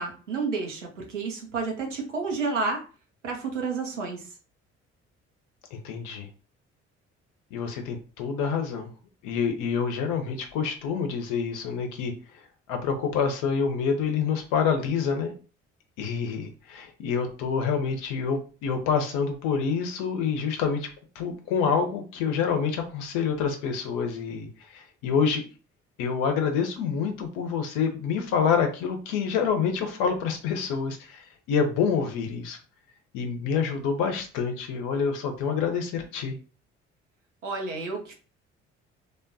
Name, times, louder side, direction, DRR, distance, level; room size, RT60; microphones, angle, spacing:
voice 1, 0.0-2.8 3.2-4.3 37.4-38.1, right 4 dB, 85° right, 1 dB, 0.7 m, -30 dB
voice 2, 5.7-6.3 7.5-8.9 9.2-12.4 12.7-15.3 16.0-20.9 21.1-25.4 26.0-32.6 33.1-36.4, left 6 dB, 60° left, 5 dB, 0.8 m, -27 dB
3.3 x 2.2 x 2.6 m, 0.36 s
figure-of-eight pair, 45°, 35 cm